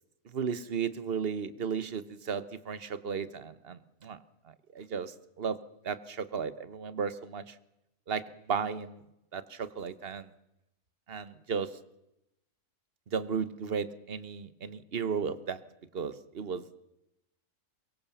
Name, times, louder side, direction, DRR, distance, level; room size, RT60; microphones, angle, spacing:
voice 1, 0.2-4.2 4.7-5.6 5.8-7.6 8.1-9.0 9.3-10.3 11.1-11.7 13.1-15.6 15.9-16.8, right 6 dB, 40° right, 15 dB, 1.3 m, -34 dB
23.5 x 23.0 x 7.2 m, 0.86 s
omnidirectional pair, 1.6 m